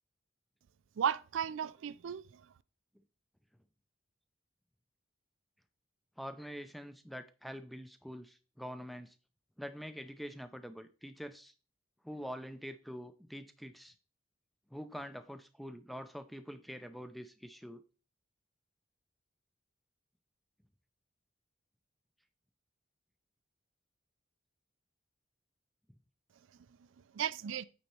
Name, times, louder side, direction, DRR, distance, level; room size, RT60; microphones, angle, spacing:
voice 1, 1.0-2.5 27.1-27.6, right 8 dB, 75° right, 0.4 m, -35 dB
voice 2, 6.2-9.1 9.6-11.5 12.0-13.9 14.7-17.8, equal, ahead, 0.4 m, -45 dB
8.6 x 4.1 x 4.4 m
head